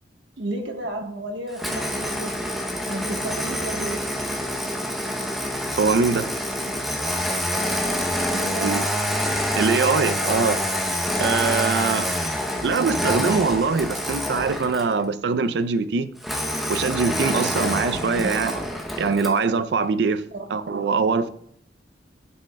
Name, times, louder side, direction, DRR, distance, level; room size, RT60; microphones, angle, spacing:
voice 1, 0.4-2.4 2.9-4.1 8.3-8.9 17.9-18.3 20.3-20.4, right 1 dB, 80° right, 1.2 m, -32 dB
Engine starting, 1.6-15.0 16.2-19.4, equal, ahead, 0.7 m, -26 dB
voice 2, 5.8-6.3 8.6-8.8 9.6-10.7 11.1-12.1 12.6-16.1 16.7-18.6 19.0-21.3, right 4 dB, 65° right, 0.4 m, -23 dB
10.0 x 6.1 x 2.2 m
head